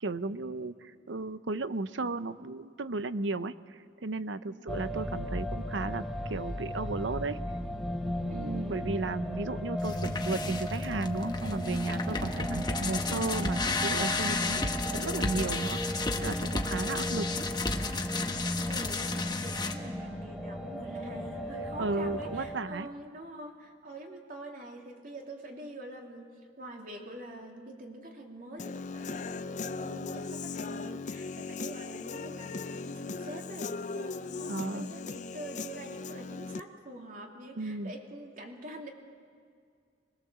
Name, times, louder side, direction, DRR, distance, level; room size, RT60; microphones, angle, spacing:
voice 1, 0.0-7.4 8.2-16.0 16.2-17.3 21.8-22.9 34.5-34.9 37.5-37.9, right 3 dB, 80° right, 13 dB, 0.8 m, -35 dB
sound 1, 4.7-22.6, equal, ahead, 1.3 m, -35 dB
voice 2, 8.3-8.9 12.1-12.5 16.3-16.6 18.7-26.3 26.6-38.9, right 1 dB, 50° right, 1 dB, 2.8 m, -45 dB
sound 2, 9.8-19.7, left 3 dB, 25° left, 1.4 m, -33 dB
Human voice / Guitar, 28.6-36.6, left 4 dB, 40° left, 0.5 m, -38 dB
25.0 x 21.0 x 7.4 m, 2.2 s
head